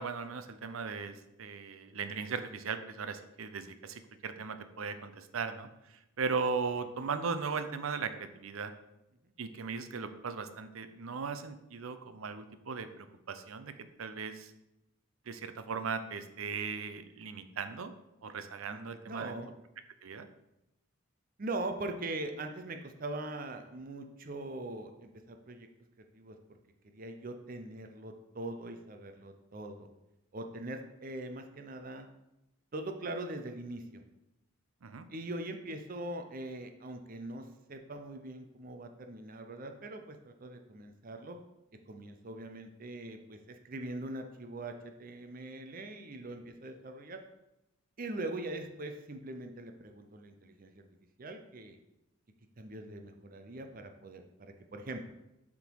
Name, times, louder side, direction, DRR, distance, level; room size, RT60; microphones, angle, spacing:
voice 1, 0.0-5.7 6.2-8.7 9.4-13.7 14.0-14.5 15.3-17.9 18.2-19.3 20.0-20.3 34.8-35.1, right 5 dB, 85° right, 10 dB, 0.6 m, -38 dB
voice 2, 19.1-19.5 21.4-25.7 26.1-26.4 26.9-29.9 30.3-32.1 32.7-34.0 35.1-41.4 41.9-47.2 48.0-50.8 51.2-51.8 52.6-55.1, right 2 dB, 40° right, 6 dB, 0.6 m, -41 dB
7.7 x 3.7 x 4.6 m, 0.90 s
head